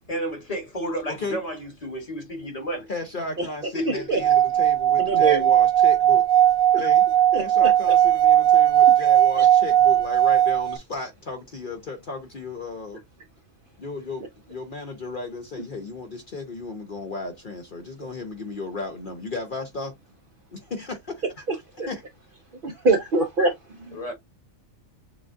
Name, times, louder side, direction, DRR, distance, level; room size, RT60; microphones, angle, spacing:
voice 1, 0.1-2.9 3.7-4.4 23.9-24.1, equal, 30° left, 1.4 m, -31 dB
voice 2, 1.1-1.4 2.9-6.3 6.8-7.1 7.3-13.0 13.8-19.9 20.5-21.4 21.8-22.0, left 3 dB, 45° left, 0.9 m, -35 dB
Singing / Glass, 4.2-10.8, right 11 dB, 80° right, 1.0 m, -18 dB
voice 3, 5.0-5.4 7.3-7.7 21.8-21.9 22.6-23.5 23.9-24.1, right 3 dB, 50° right, 0.7 m, -23 dB
7.0 x 2.4 x 2.5 m
omnidirectional pair, 1.4 m